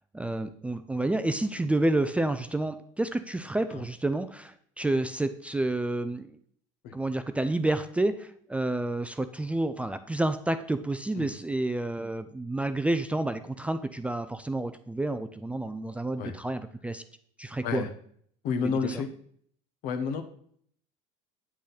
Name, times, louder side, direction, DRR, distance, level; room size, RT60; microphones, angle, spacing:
voice 1, 0.1-6.4 6.9-17.0 17.4-17.8 18.6-19.0, right 2 dB, 10° right, 10 dB, 0.4 m, -29 dB
voice 2, 18.4-19.1 19.8-20.2, left 5 dB, 60° left, 8 dB, 1.2 m, -30 dB
8.1 x 6.3 x 4.1 m, 0.62 s
supercardioid pair, 105°, 16 cm